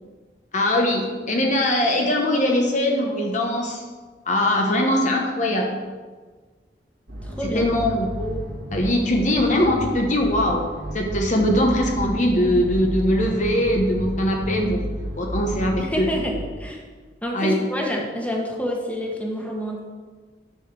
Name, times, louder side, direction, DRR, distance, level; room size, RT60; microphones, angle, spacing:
voice 1, 0.5-3.8 4.3-5.8 7.4-8.4 8.7-10.7 10.9-14.8 15.2-16.1 17.3-17.6, left 1 dB, 45° left, 1 dB, 1.0 m, -21 dB
sound 1, 7.1-16.5, equal, 80° right, 2.2 m, -32 dB
voice 2, 7.2-7.6 15.8-16.8 17.2-19.8, equal, 10° left, 0 dB, 1.3 m, -28 dB
10.0 x 5.0 x 6.1 m, 1.4 s
head